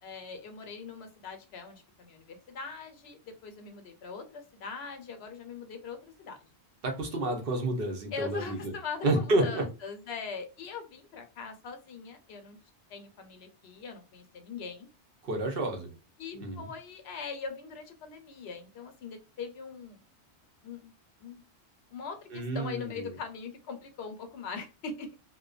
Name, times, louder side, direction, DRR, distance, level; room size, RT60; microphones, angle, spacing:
voice 1, 0.0-6.4 7.1-7.2 8.1-12.6 12.9-14.9 16.2-20.0 20.6-20.9 21.2-21.4 21.9-25.2, left 5 dB, 70° left, 7 dB, 0.8 m, -41 dB
voice 2, 6.8-8.7 9.0-9.6 15.2-15.9 16.3-16.7 22.3-23.1, right 2 dB, 60° right, 3 dB, 0.8 m, -30 dB
2.5 x 2.2 x 2.3 m, 0.32 s
omnidirectional pair, 1.1 m